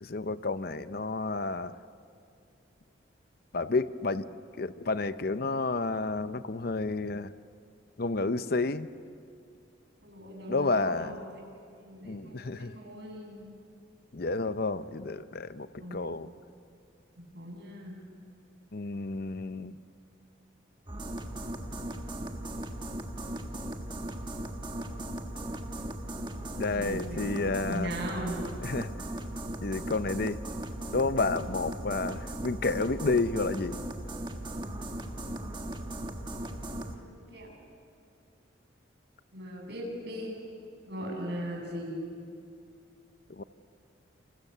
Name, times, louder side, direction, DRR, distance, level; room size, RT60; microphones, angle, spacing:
voice 1, 0.0-1.8 3.5-4.3 4.6-7.3 8.0-8.9 10.5-11.2 12.0-12.7 14.1-16.3 18.7-19.8 26.6-27.9 28.6-28.9 29.6-30.4 30.9-33.8 43.3-43.4, left 3 dB, 50° left, 12 dB, 0.7 m, -30 dB
voice 2, 10.0-11.4 11.8-13.5 15.8-16.0 17.3-18.0 26.7-28.4 36.9-37.0 37.3-37.5 39.3-40.4 40.9-41.9, equal, 60° right, 0 dB, 7.7 m, -39 dB
sound 1, 20.9-37.0, right 1 dB, 25° right, 1.5 m, -38 dB
29.5 x 28.0 x 6.9 m, 2.5 s
head